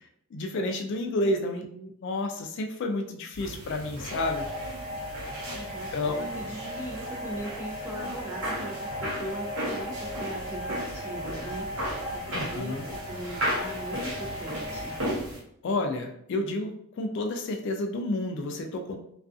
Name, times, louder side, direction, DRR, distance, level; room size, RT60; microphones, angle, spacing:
voice 1, 0.3-1.6 2.0-4.7 5.9-6.2 12.3-12.9 15.6-19.0, left 2 dB, 55° left, 3 dB, 0.3 m, -30 dB
voice 2, 1.6-1.9 5.5-11.8 12.1-15.0, right 1 dB, 10° right, -2 dB, 0.5 m, -40 dB
sound 1, 3.3-15.4, equal, 70° right, 0.9 m, -36 dB
sound 2, 4.1-15.0, left 1 dB, 30° right, 1.1 m, -37 dB
2.5 x 2.3 x 2.4 m, 0.72 s
head